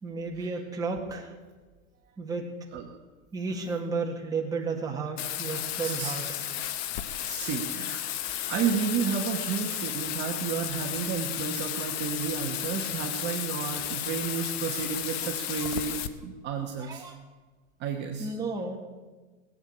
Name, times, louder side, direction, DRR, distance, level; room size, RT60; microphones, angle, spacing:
voice 1, 0.0-1.3 2.2-2.5 3.3-6.5 15.2-15.3 15.6-15.7 16.8-17.2 18.2-18.8, right 4 dB, 10° right, 0 dB, 1.8 m, -33 dB
Bathtub (filling or washing), 5.2-16.1, left 12 dB, 45° left, 1.0 m, -33 dB
voice 2, 5.8-6.2 7.2-8.1 8.5-17.0 17.8-18.3, right 7 dB, 25° right, 0 dB, 1.3 m, -32 dB
18.0 x 8.5 x 8.4 m, 1.3 s
supercardioid pair, 150°, 42 cm